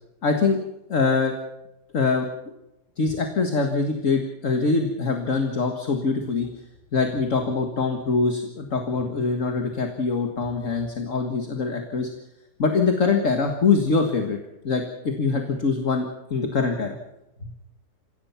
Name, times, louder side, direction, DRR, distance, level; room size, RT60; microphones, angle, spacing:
voice 1, 0.2-0.6 0.9-1.3 1.9-2.3 3.0-6.5 6.9-12.1 12.6-14.4 14.6-17.0 17.4-17.5, left 4 dB, 50° left, 4 dB, 2.0 m, -23 dB
27.5 x 16.5 x 5.8 m, 0.92 s
omnidirectional pair, 1.8 m